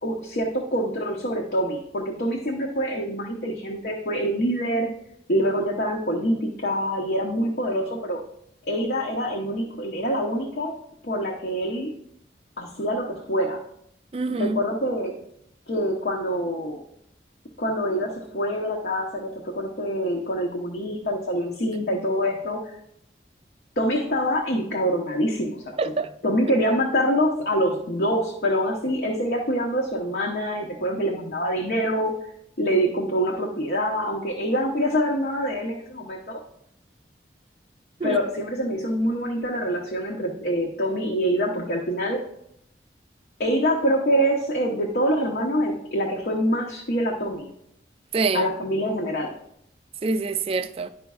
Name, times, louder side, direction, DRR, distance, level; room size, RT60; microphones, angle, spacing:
voice 1, 0.0-4.9 5.3-8.2 8.7-10.7 11.0-11.9 12.6-13.6 14.4-15.1 15.7-16.8 17.6-22.8 23.8-25.8 26.2-32.2 32.6-36.4 38.0-42.3 43.4-47.5 48.3-49.3, equal, 60° left, 0.8 m, -25 dB
voice 2, 14.1-14.6 21.7-21.8 25.8-26.1 38.0-38.2 48.1-48.5 50.0-50.9, right 3 dB, 35° right, 0.3 m, -25 dB
10.5 x 5.1 x 2.3 m
head